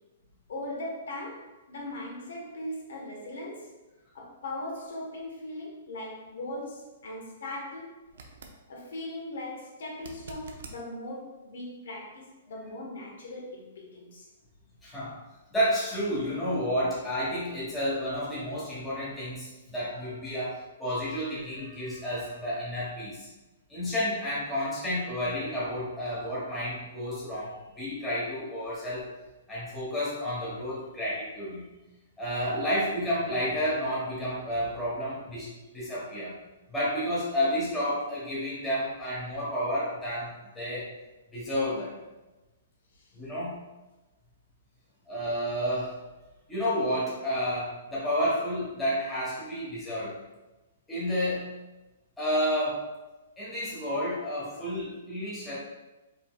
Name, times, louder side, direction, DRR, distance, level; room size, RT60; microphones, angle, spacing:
voice 1, 0.5-3.7 4.1-8.0 8.7-14.3 42.9-43.1, left 1 dB, 70° left, -2 dB, 1.2 m, -39 dB
sound 1, 8.1-8.6 10.0-10.8 13.8-13.9, right 3 dB, 70° right, 0.6 m, -46 dB
voice 2, 14.8-15.2 15.5-23.3 23.7-29.1 29.5-31.7 32.2-36.3 36.7-40.9 41.3-41.9 43.1-43.6 45.1-45.9 46.5-50.2 50.9-51.5 52.2-52.8 53.4-55.5, equal, 5° left, -10 dB, 1.3 m, -31 dB
5.2 x 3.6 x 2.3 m, 1.1 s
hypercardioid pair, 170°, 0 cm